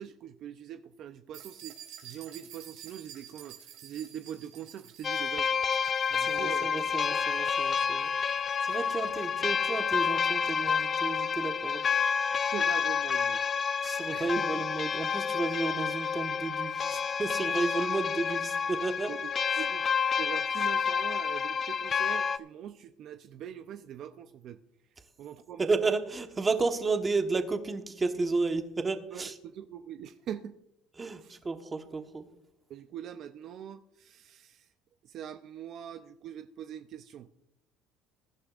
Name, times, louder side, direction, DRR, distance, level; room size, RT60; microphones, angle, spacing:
voice 1, 0.0-5.5 6.1-7.1 12.5-13.4 14.1-14.4 19.1-19.3 19.6-19.9 20.2-24.6 25.2-25.7 29.1-30.6 31.2-31.4 32.7-34.7 35.0-37.3, right 9 dB, 55° right, 9 dB, 0.6 m, -43 dB
sound 1, 1.3-9.1, right 10 dB, 80° right, 3.3 m, -51 dB
sound 2, 5.0-22.4, left 6 dB, 35° left, 0.5 m, -29 dB
voice 2, 6.2-8.1 8.6-11.8 13.8-19.1 19.5-19.6 25.6-29.4 31.0-32.3, right 3 dB, 20° right, 7 dB, 1.2 m, -32 dB
21.0 x 11.5 x 2.5 m, 0.80 s
cardioid pair, 120°, 0 cm